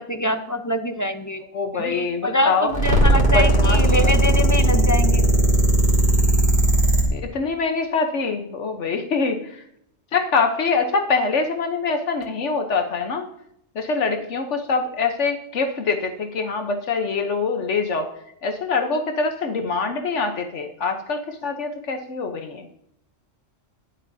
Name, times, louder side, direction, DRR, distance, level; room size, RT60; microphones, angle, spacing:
voice 1, 0.0-1.4 1.7-5.3, left 1 dB, 20° left, 8 dB, 0.5 m, -24 dB
voice 2, 1.5-2.7 3.3-4.1 7.1-9.6 10.1-13.3 13.7-18.1 18.4-22.7, left 4 dB, 70° left, 6 dB, 1.2 m, -24 dB
sound 1, 2.7-7.0, right 1 dB, 45° right, 2.7 m, -17 dB
20.5 x 7.6 x 2.7 m, 0.74 s
omnidirectional pair, 1.3 m